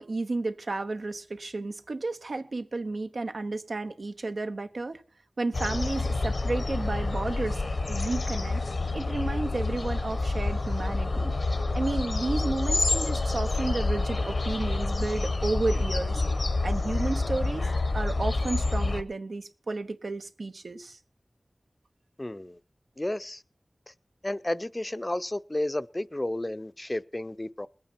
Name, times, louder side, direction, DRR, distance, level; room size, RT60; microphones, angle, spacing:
voice 1, 0.0-5.0 5.4-7.6 7.9-8.6 8.9-11.3 11.7-16.2 16.6-21.0, right 3 dB, 80° right, 0.9 m, -32 dB
sound 1, 5.5-19.0, left 2 dB, 70° left, 1.0 m, -28 dB
voice 2, 22.2-22.6 23.0-23.4 24.2-27.7, left 1 dB, 25° left, 0.6 m, -32 dB
21.0 x 8.7 x 4.4 m
wide cardioid pair, 65°, 0 cm